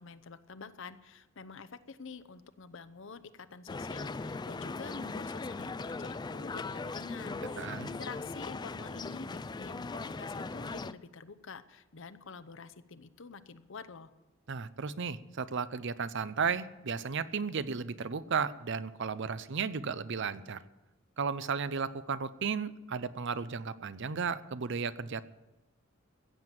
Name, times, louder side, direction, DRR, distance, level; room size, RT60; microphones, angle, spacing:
voice 1, 0.0-14.1, left 5 dB, 65° left, 12 dB, 0.8 m, -48 dB
sound 1, 3.7-10.9, left 3 dB, 20° left, 0.4 m, -39 dB
voice 2, 7.6-7.9 14.5-20.6 21.2-25.2, right 5 dB, 60° right, 15 dB, 0.6 m, -34 dB
15.5 x 7.8 x 9.0 m, 1.1 s
head